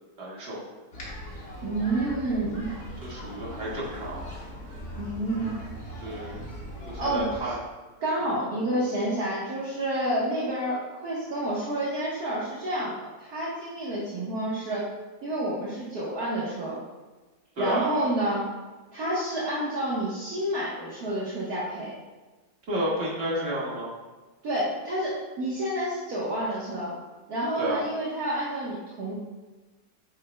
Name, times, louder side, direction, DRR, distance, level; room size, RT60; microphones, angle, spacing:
voice 1, 0.2-0.6 3.0-4.2 6.0-6.4 6.9-7.6 8.2-8.5 17.6-17.9 22.7-23.9 27.6-27.8, right 1 dB, 40° right, -6 dB, 2.0 m, -31 dB
sound 1, 0.9-7.4, equal, 60° left, 2.1 m, -40 dB
voice 2, 1.6-2.7 5.0-5.6 7.0-7.3 8.0-14.9 15.2-16.8 17.6-18.5 18.9-21.9 24.4-26.9 27.3-29.1, right 1 dB, 60° right, -7 dB, 1.7 m, -29 dB
8.3 x 7.6 x 2.2 m, 1.2 s
omnidirectional pair, 1.9 m